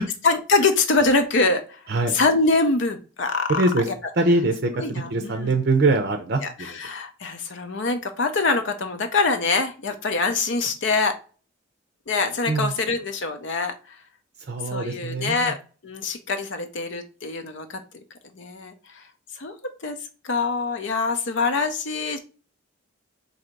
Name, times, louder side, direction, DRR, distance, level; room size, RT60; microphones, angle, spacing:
voice 1, 0.2-1.8 2.1-3.9 4.8-5.5 6.4-11.2 12.1-14.0 14.7-15.6 15.8-17.8 18.4-19.0 19.4-19.5 19.8-20.0 20.2-22.2, left 3 dB, 60° left, 6 dB, 0.6 m, -24 dB
voice 2, 3.5-3.9 4.2-6.8 12.5-12.7 14.5-15.5, right 2 dB, 50° right, 5 dB, 0.5 m, -23 dB
3.9 x 2.8 x 4.4 m, 0.36 s
head